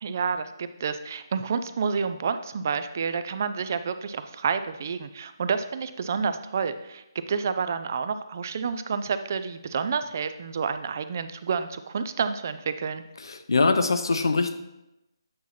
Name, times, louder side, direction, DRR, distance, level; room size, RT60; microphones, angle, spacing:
voice 1, 0.0-13.0, right 5 dB, 35° right, 11 dB, 0.3 m, -29 dB
voice 2, 13.2-14.5, left 3 dB, 70° left, 8 dB, 0.7 m, -23 dB
8.4 x 2.9 x 5.8 m, 0.92 s
hypercardioid pair, 165°, 2 cm